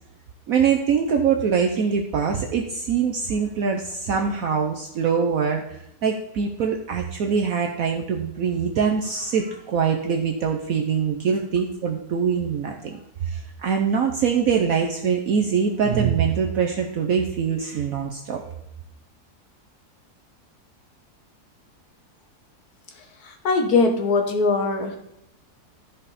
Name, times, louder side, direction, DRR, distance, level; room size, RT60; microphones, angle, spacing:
voice 1, 0.5-5.6 6.0-13.0 13.3-18.4, right 6 dB, 60° right, 2 dB, 1.1 m, -23 dB
voice 2, 23.2-25.0, left 3 dB, 65° left, 5 dB, 1.8 m, -21 dB
13.5 x 5.2 x 4.1 m, 0.80 s
omnidirectional pair, 1.8 m